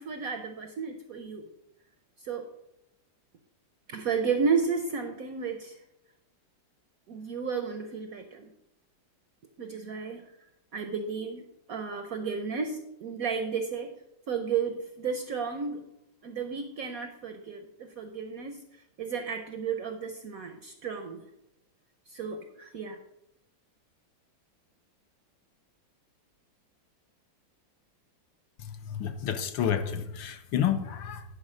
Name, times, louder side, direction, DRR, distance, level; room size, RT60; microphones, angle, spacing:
voice 1, 0.0-1.5 2.2-2.5 3.9-5.8 7.1-8.5 9.6-10.3 10.7-13.9 14.3-15.8 16.2-18.7 19.0-21.3 22.1-23.0, right 5 dB, 65° right, 6 dB, 0.9 m, -33 dB
voice 2, 28.8-31.2, left 9 dB, 75° left, 8 dB, 1.4 m, -30 dB
10.5 x 4.8 x 5.0 m, 0.80 s
omnidirectional pair, 2.2 m